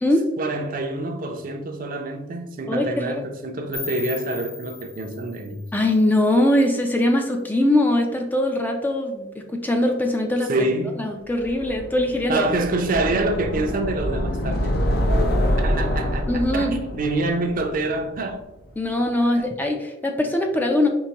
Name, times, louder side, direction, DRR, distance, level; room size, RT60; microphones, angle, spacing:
voice 1, 0.4-5.6 10.5-11.0 12.3-14.9 15.6-18.4, right 2 dB, 45° right, 0.5 m, -26 dB
voice 2, 2.7-3.2 5.7-10.7 11.0-12.5 16.3-16.7 18.8-20.9, left 1 dB, 10° left, 0.4 m, -21 dB
sound 1, 3.7-6.7, left 4 dB, 80° left, 1.5 m, -38 dB
sound 2, 11.4-18.5, equal, 60° left, 0.6 m, -26 dB
4.6 x 3.4 x 2.9 m
head